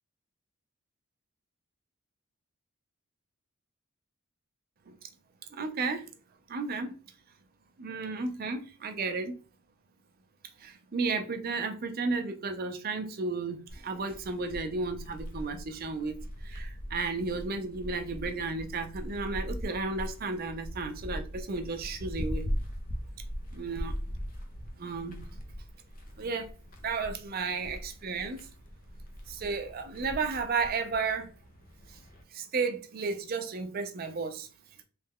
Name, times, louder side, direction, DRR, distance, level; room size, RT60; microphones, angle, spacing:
voice 1, 5.5-6.1 6.5-7.0 7.8-9.4 10.6-22.4 23.5-23.9 24.8-25.2 26.2-26.5 26.8-28.5 29.3-31.3 31.9-32.0 32.3-34.5, right 4 dB, 45° right, 0.5 m, -33 dB
sound 1, 13.7-32.2, equal, 40° left, 0.6 m, -40 dB
3.2 x 2.2 x 3.5 m
head